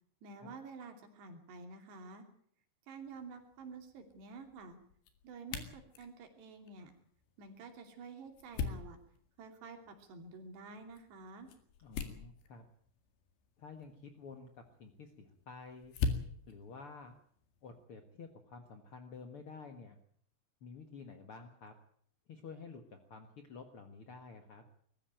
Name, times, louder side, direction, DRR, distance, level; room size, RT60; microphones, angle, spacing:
voice 1, 0.2-2.3 2.9-4.8 5.2-6.9 7.4-9.0 9.4-11.5, right 4 dB, 70° right, 5 dB, 4.9 m, -50 dB
sound 1, 3.0-17.9, left 5 dB, 75° left, 4.3 m, -45 dB
voice 2, 11.8-12.6 13.6-14.5 14.8-15.9 16.5-17.1 17.6-20.0 20.6-21.7 22.3-24.6, left 4 dB, 60° left, 6 dB, 1.4 m, -51 dB
22.0 x 14.0 x 9.0 m, 0.64 s
omnidirectional pair, 5.0 m